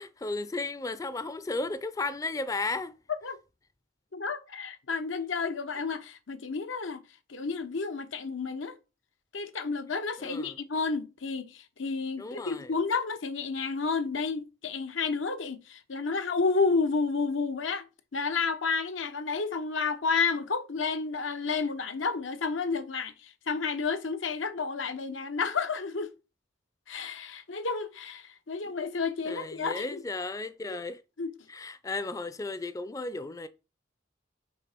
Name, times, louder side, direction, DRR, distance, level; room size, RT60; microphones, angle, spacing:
voice 1, 0.0-3.0 10.2-10.6 12.2-12.7 28.8-28.9 29.3-31.0 31.5-33.5, left 3 dB, 20° left, 0.4 m, -34 dB
voice 2, 4.1-7.0 7.3-8.8 9.3-17.8 18.1-26.1 26.9-30.0 30.7-30.8 31.2-31.3, left 4 dB, 90° left, 0.9 m, -31 dB
6.0 x 4.3 x 5.9 m
head